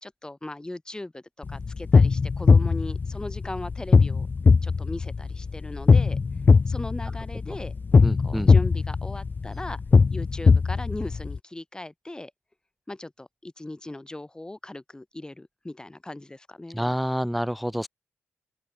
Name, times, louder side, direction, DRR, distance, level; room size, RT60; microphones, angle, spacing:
voice 1, 0.0-4.3 4.6-6.2 6.7-7.7 8.2-9.8 10.1-12.3 12.9-16.8, left 2 dB, 15° left, 0.9 m, -38 dB
sound 1, 1.4-11.4, left 4 dB, 40° left, 0.6 m, -20 dB
voice 2, 8.0-8.5 16.7-17.9, equal, ahead, 0.4 m, -28 dB
open air
cardioid pair, 55°, 5 cm